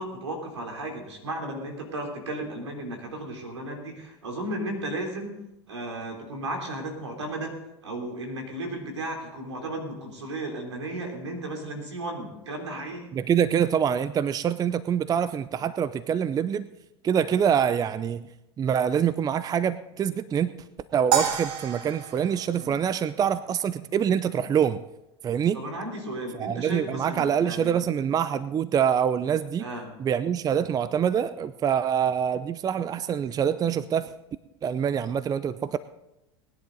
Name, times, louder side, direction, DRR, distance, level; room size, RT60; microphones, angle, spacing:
voice 1, 0.0-5.3 5.7-7.5 7.8-13.1 22.5-22.8 25.5-27.8 29.6-29.9, right 1 dB, 85° right, 3 dB, 3.4 m, -34 dB
voice 2, 13.1-16.7 17.0-18.3 18.6-20.5 20.9-24.8 25.2-25.6 26.4-29.7 30.0-34.1 34.6-35.8, right 8 dB, 25° right, 15 dB, 0.5 m, -25 dB
sound 1, 21.1-23.5, right 8 dB, 60° right, 1.8 m, -29 dB
19.5 x 10.5 x 3.9 m, 0.90 s
hypercardioid pair, 85°, 14 cm